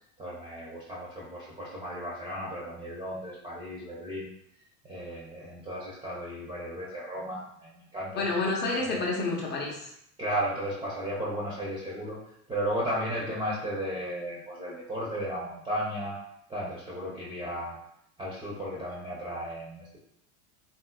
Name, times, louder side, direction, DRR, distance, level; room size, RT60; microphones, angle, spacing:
voice 1, 0.2-4.3 4.8-8.3 8.9-9.0 10.2-12.2 12.5-16.2 16.5-17.8 18.2-20.0, equal, 10° right, -6 dB, 0.7 m, -34 dB
voice 2, 8.2-9.9, left 3 dB, 25° left, -2 dB, 0.7 m, -29 dB
3.8 x 2.5 x 2.3 m, 0.73 s
figure-of-eight pair, 75°, 45 cm